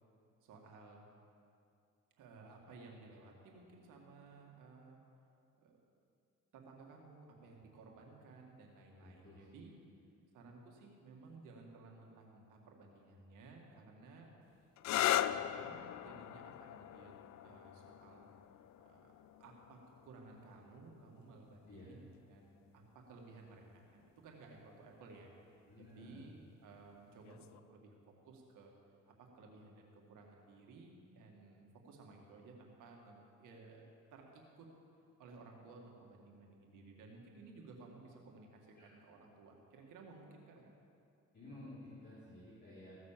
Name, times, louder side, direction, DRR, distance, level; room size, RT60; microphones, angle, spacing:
voice 1, 0.4-1.1 2.2-5.0 5.6-5.8 6.5-9.7 10.3-14.3 14.9-17.1 17.4-18.3 18.8-19.1 19.4-25.3 25.8-27.9 28.2-28.7 29.1-34.7 35.2-40.7, right 3 dB, 90° right, 0 dB, 2.0 m, -57 dB
voice 2, 9.0-9.5 21.7-21.9 25.7-26.2 38.7-38.9 41.3-43.0, left 1 dB, 35° left, -10 dB, 3.7 m, -53 dB
sound 1, 14.8-22.2 23.2-23.7 27.2-27.6, left 12 dB, 65° left, 0.5 m, -40 dB
15.5 x 6.4 x 7.4 m, 2.5 s
cardioid pair, 90°, 30 cm